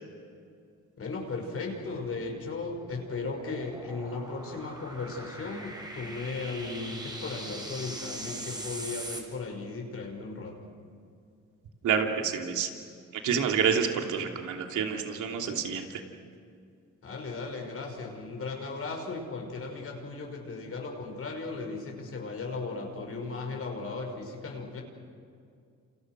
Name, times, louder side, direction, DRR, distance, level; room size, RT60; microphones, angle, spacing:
voice 1, 1.0-10.6 17.0-24.8, left 3 dB, 50° left, 2 dB, 5.9 m, -36 dB
sound 1, 1.8-9.2, right 1 dB, 15° right, 6.1 m, -42 dB
voice 2, 11.8-12.7 13.2-16.0, right 7 dB, 80° right, 3 dB, 3.0 m, -28 dB
29.0 x 28.5 x 6.3 m, 2.3 s
cardioid pair, 90°, 30 cm